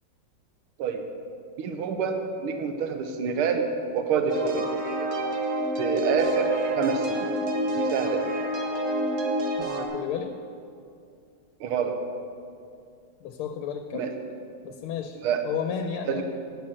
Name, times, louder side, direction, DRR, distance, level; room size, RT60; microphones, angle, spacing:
voice 1, 1.6-3.7 3.9-4.7 5.8-7.3 7.7-8.3 11.6-12.0 13.9-14.1 15.2-15.5 16.1-16.2, right 6 dB, 90° right, 5 dB, 1.7 m, -27 dB
sound 1, 4.3-9.9, right 1 dB, 50° right, 1.0 m, -28 dB
voice 2, 9.6-10.3 13.2-14.1 14.6-16.2, left 8 dB, 85° left, 6 dB, 1.5 m, -33 dB
9.8 x 6.0 x 7.7 m, 2.4 s
omnidirectional pair, 2.3 m